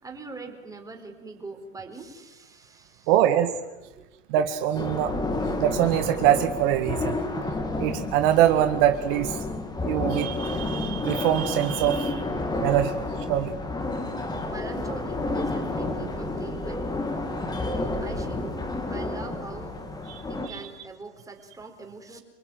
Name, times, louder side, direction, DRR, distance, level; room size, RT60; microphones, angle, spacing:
voice 1, 0.0-3.1 3.9-4.1 14.5-16.8 18.0-19.8 20.3-22.2, right 3 dB, 10° right, 4 dB, 4.3 m, -42 dB
voice 2, 3.1-3.5 4.3-5.1 5.6-7.2 7.8-9.4 9.8-12.2 12.6-12.9 13.3-13.6 20.1-20.7, right 11 dB, 55° right, 7 dB, 1.9 m, -23 dB
sound 1, 4.7-20.5, left 2 dB, 10° left, 3.1 m, -30 dB
28.0 x 20.5 x 9.3 m, 1.1 s
supercardioid pair, 135°, 35 cm